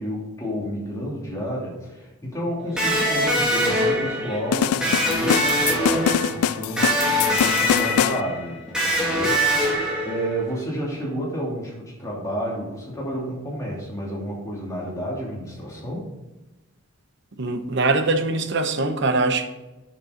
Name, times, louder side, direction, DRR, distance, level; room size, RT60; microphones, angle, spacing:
voice 1, 0.0-16.0, equal, 15° left, 2.7 m, -31 dB
Electric guitar, 2.8-10.5, equal, 5° right, 2.0 m, -23 dB
sound 1, 4.5-8.2, left 9 dB, 85° left, 0.3 m, -23 dB
voice 2, 17.4-19.5, right 3 dB, 55° right, 0.9 m, -22 dB
8.3 x 6.8 x 5.1 m
head